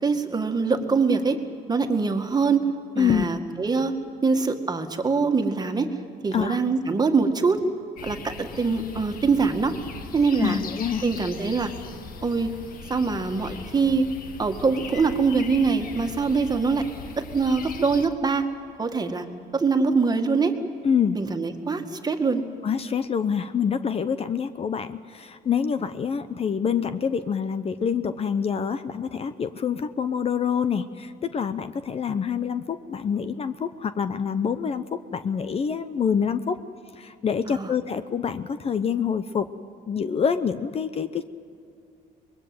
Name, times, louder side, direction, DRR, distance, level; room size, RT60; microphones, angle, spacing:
voice 1, 0.0-1.4 1.7-2.7 3.0-3.9 4.2-5.9 6.2-7.6 8.0-9.8 10.1-10.6 11.0-11.7 12.2-12.5 12.9-14.1 14.4-16.9 17.2-18.5 18.8-19.3 19.5-20.6 21.1-22.4 37.5-37.7, right 4 dB, 25° right, 5 dB, 2.0 m, -23 dB
sound 1, 8.0-18.1, left 5 dB, 55° left, 1.8 m, -40 dB
voice 2, 10.4-11.0 20.8-21.2 22.6-36.6 37.0-39.5 39.9-41.2, left 7 dB, 35° left, 12 dB, 0.8 m, -26 dB
24.5 x 21.0 x 7.9 m, 2.6 s
cardioid pair, 110°, 17 cm